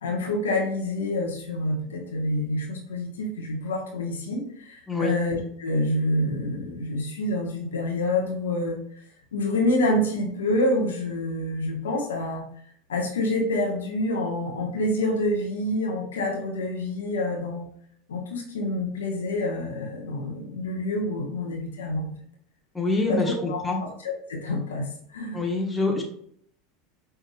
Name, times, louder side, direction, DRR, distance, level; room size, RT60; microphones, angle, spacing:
voice 1, 0.0-8.8 9.3-12.4 12.9-17.6 18.1-22.1 23.1-23.2 23.5-24.9 25.1-25.4, left 1 dB, 80° left, 0 dB, 1.1 m, -27 dB
voice 2, 22.7-23.8 25.3-26.0, left 2 dB, 10° left, 1 dB, 1.2 m, -25 dB
5.6 x 3.5 x 2.3 m, 0.65 s
hypercardioid pair, 85°, 0 cm